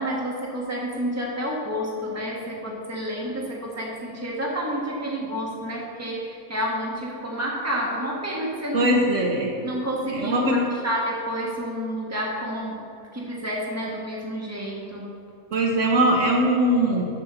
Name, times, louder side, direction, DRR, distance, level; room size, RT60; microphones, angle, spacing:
voice 1, 0.0-8.9 9.6-15.1, equal, 10° right, -4 dB, 1.5 m, -29 dB
voice 2, 8.7-9.5 10.2-10.6 15.5-17.1, right 1 dB, 65° right, 0 dB, 1.2 m, -21 dB
7.0 x 6.4 x 6.8 m, 2.5 s
omnidirectional pair, 1.4 m